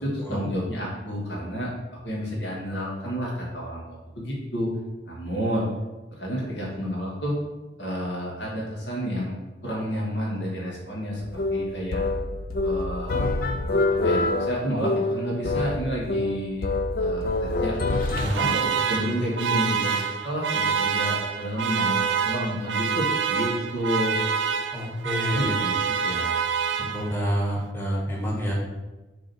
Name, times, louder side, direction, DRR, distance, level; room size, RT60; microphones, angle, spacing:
voice 1, 0.0-1.7 2.0-3.8 4.2-4.7 5.1-5.7 6.1-7.4 7.8-9.4 9.6-11.2 11.5-12.0 12.6-13.3 14.0-16.7 17.0-17.8 18.3-24.2 25.3-26.4, equal, 70° left, -4 dB, 2.2 m, -30 dB
sound 1, 11.2-18.3, left 2 dB, 50° left, 0.5 m, -26 dB
Alarm, 17.9-27.3, right 6 dB, 80° right, 0.5 m, -27 dB
voice 2, 18.1-18.5 24.7-25.5 26.9-28.5, equal, 10° left, -3 dB, 1.6 m, -28 dB
6.4 x 4.2 x 4.5 m, 1.1 s
head